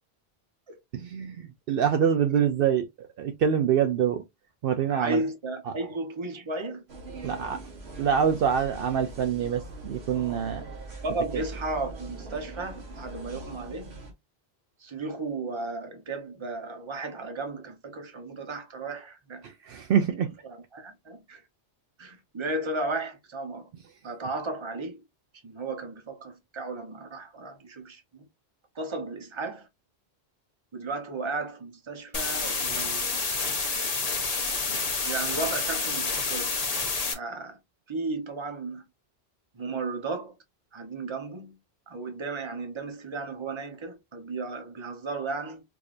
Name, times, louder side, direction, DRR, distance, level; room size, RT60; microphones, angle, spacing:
voice 1, 0.9-4.2 4.6-5.2 5.7-5.8 7.2-7.6 8.0-10.6 11.3-11.4 19.4-20.3, right 8 dB, 65° right, 0.7 m, -25 dB
voice 2, 4.9-6.8 11.0-13.9 14.8-19.5 20.7-21.4 22.0-23.7 24.0-25.0 25.4-28.3 28.7-29.7 30.7-33.2 35.0-36.5 37.1-37.6 37.9-38.8 39.5-40.3 40.7-41.6 41.9-45.6, right 3 dB, 30° right, 0.9 m, -34 dB
sound 1, 6.9-14.1, right 2 dB, 85° right, 1.4 m, -41 dB
sound 2, 32.1-37.1, left 4 dB, 40° left, 0.8 m, -29 dB
4.7 x 2.7 x 2.5 m
omnidirectional pair, 1.0 m